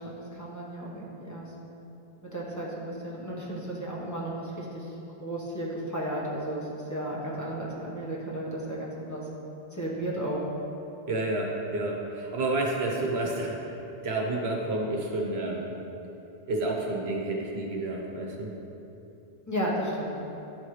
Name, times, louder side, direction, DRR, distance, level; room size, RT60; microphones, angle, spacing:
voice 1, 0.0-1.5 2.2-9.3 9.7-10.4 19.5-20.1, right 1 dB, 15° left, -5 dB, 1.2 m, -34 dB
voice 2, 11.1-13.6 14.0-15.6 16.5-18.5, right 2 dB, 90° right, -1 dB, 1.3 m, -30 dB
11.0 x 4.4 x 3.2 m, 3.0 s
omnidirectional pair, 1.0 m